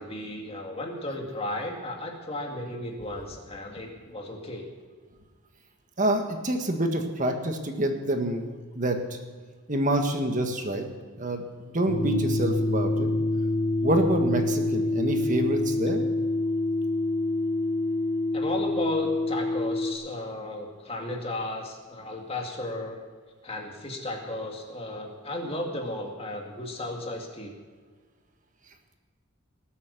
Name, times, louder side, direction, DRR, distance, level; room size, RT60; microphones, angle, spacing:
voice 1, 0.0-4.7 18.3-23.0 23.4-27.5, left 1 dB, 30° left, 1 dB, 2.3 m, -34 dB
voice 2, 6.0-9.2 9.7-10.9 11.2-13.1 13.8-16.0, right 1 dB, 40° right, 5 dB, 1.6 m, -27 dB
sound 1, 11.9-19.9, left 2 dB, 75° left, 2.3 m, -26 dB
19.5 x 8.5 x 6.8 m, 1.5 s
head